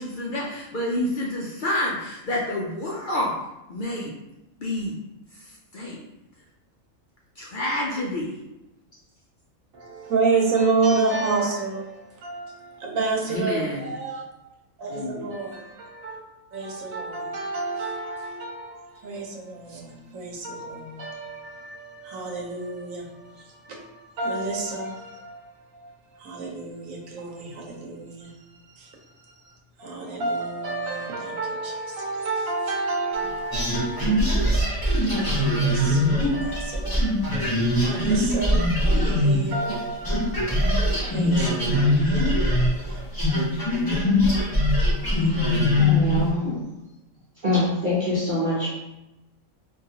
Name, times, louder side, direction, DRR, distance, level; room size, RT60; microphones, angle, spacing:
voice 1, 0.0-3.3 3.7-4.1 4.6-4.9 5.4-6.0 7.4-8.4 13.3-13.9 14.9-15.3, left 1 dB, 75° left, -3 dB, 0.4 m, -28 dB
voice 2, 9.7-14.2 14.8-16.2 16.5-34.6 35.2-43.0 45.1-45.3, right 3 dB, 75° right, 0 dB, 1.1 m, -30 dB
sound 1, 33.5-39.8 40.0-46.3, left 1 dB, 20° left, 0.9 m, -22 dB
voice 3, 45.1-45.4 45.8-46.6 47.4-48.7, left 2 dB, 45° right, -9 dB, 0.8 m, -25 dB
3.8 x 2.6 x 2.7 m, 0.95 s
omnidirectional pair, 1.4 m